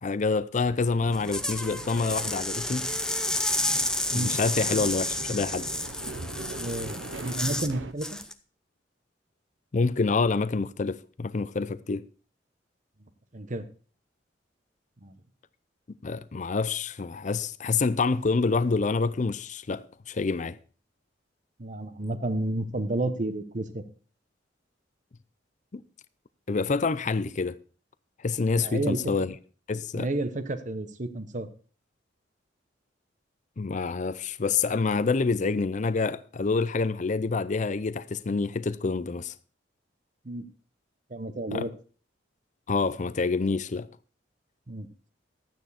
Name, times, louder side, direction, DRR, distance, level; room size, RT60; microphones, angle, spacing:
voice 1, 0.0-2.9 4.1-5.7 9.7-12.0 15.9-20.6 25.7-25.8 26.5-27.6 28.2-29.3 29.7-30.1 33.6-39.3 41.5-41.7 42.7-43.9, left 4 dB, 40° left, 0.5 m, -27 dB
sound 1, 0.6-7.9, right 3 dB, 80° right, 0.9 m, -41 dB
sound 2, 1.1-7.7 8.0-8.3, left 1 dB, 5° left, 0.7 m, -31 dB
voice 2, 6.5-8.2 13.3-13.7 15.0-15.2 21.6-23.8 28.6-29.0 29.9-31.5 40.2-40.4 41.1-41.7 44.7-44.9, right 2 dB, 40° right, 1.1 m, -31 dB
12.5 x 9.1 x 4.2 m
head